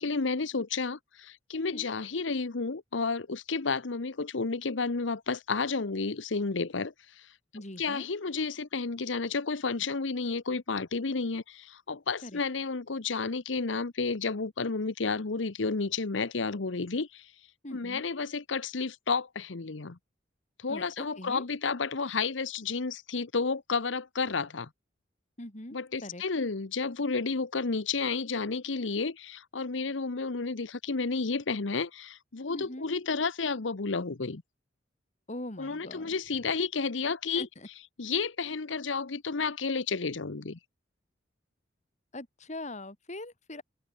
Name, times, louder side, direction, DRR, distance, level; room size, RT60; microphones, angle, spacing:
voice 1, 0.0-17.3 17.7-20.0 20.6-24.7 25.7-34.4 35.6-37.5 38.0-40.6, left 4 dB, 85° left, 1.0 m, -31 dB
voice 2, 1.5-1.9 7.5-8.1 12.2-12.4 17.6-18.1 20.7-21.4 25.4-26.2 32.5-32.9 35.3-36.1 37.4-37.7 42.1-43.6, left 1 dB, 40° left, 3.6 m, -42 dB
head